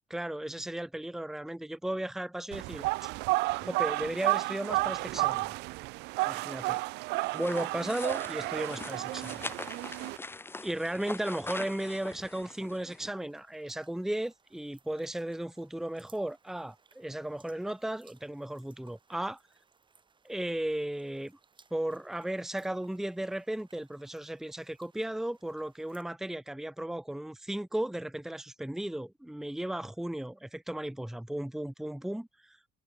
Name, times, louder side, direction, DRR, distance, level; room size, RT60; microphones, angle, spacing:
voice 1, 0.1-3.1 3.6-5.5 6.2-6.8 7.3-9.5 10.6-19.4 20.2-21.4 21.7-32.6, right 1 dB, ahead, 0.9 m, -35 dB
sound 1, 2.5-10.2, right 23 dB, 85° right, 0.4 m, -32 dB
sound 2, 7.2-13.1, left 2 dB, 15° left, 1.4 m, -43 dB
sound 3, 11.8-26.0, right 5 dB, 30° right, 7.0 m, -66 dB
cardioid pair, 110°, 17 cm